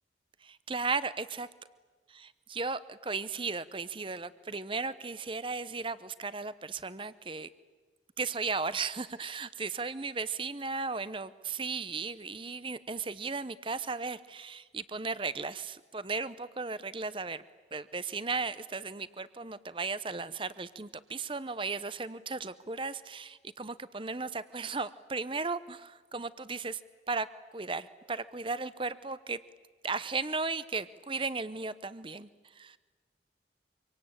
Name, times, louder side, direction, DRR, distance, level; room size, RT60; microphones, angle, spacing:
voice 1, 0.4-1.5 2.1-7.5 8.2-17.4 17.7-26.8 27.1-27.3 27.5-29.4 29.8-32.8, right 4 dB, 30° right, 15 dB, 0.9 m, -36 dB
26.0 x 24.5 x 8.9 m, 1.4 s
head